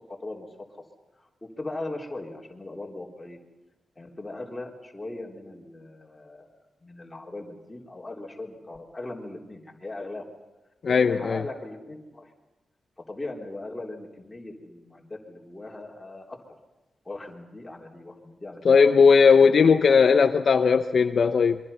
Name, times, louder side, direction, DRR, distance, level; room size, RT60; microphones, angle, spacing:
voice 1, 0.1-0.5 1.2-3.4 4.0-6.5 6.8-10.3 10.9-12.3 13.0-16.4 17.0-18.6, left 2 dB, 10° left, 3.7 m, -39 dB
voice 2, 10.8-11.4 18.6-21.6, left 5 dB, 50° left, 0.8 m, -18 dB
27.0 x 24.0 x 5.7 m
wide cardioid pair, 175°, 0 cm